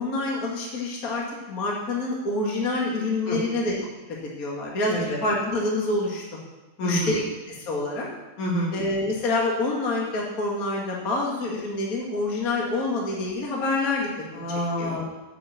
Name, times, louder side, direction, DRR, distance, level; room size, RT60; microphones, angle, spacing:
voice 1, 0.0-3.7 4.2-6.2 6.8-7.2 7.5-8.1 8.7-14.4 14.8-15.0, left 2 dB, 35° left, -3 dB, 1.6 m, -27 dB
voice 2, 6.8-7.2 8.4-8.7 14.3-15.1, left 1 dB, 50° left, -2 dB, 3.2 m, -27 dB
8.5 x 8.0 x 8.5 m, 1.1 s
omnidirectional pair, 4.7 m